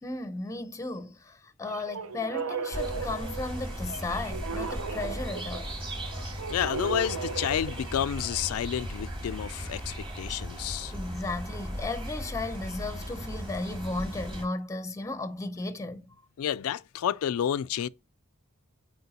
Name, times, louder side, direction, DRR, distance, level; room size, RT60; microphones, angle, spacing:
voice 1, 0.0-5.7 10.9-16.1, left 2 dB, 15° left, 0.6 m, -35 dB
sound 1, 1.6-8.5, right 5 dB, 70° right, 0.7 m, -37 dB
sound 2, 2.7-14.5, equal, 25° right, 2.1 m, -37 dB
voice 2, 6.5-10.9 16.4-17.9, left 9 dB, 75° left, 0.3 m, -30 dB
8.0 x 4.6 x 2.8 m
head